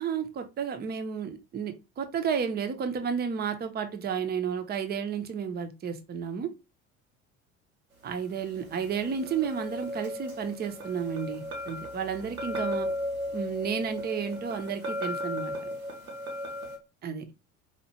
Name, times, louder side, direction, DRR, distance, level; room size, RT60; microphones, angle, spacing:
voice 1, 0.0-6.5 8.0-12.9 13.3-15.7 17.0-17.3, right 7 dB, 25° right, 0.7 m, -32 dB
sound 1, 8.4-16.8, left 1 dB, 90° right, 0.9 m, -36 dB
4.4 x 2.4 x 2.8 m
figure-of-eight pair, 60°, 41 cm